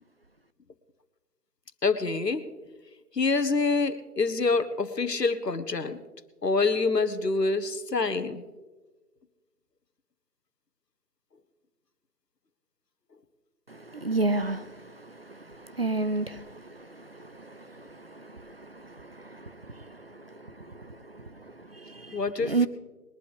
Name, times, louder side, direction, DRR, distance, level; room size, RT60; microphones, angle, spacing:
voice 1, 1.8-2.4 3.1-6.0 6.4-8.4 22.1-22.7, left 3 dB, 80° left, 11 dB, 1.4 m, -26 dB
voice 2, 13.7-22.7, right 3 dB, 40° right, 11 dB, 0.5 m, -33 dB
22.0 x 11.5 x 3.4 m, 1.2 s
figure-of-eight pair, 150°, 48 cm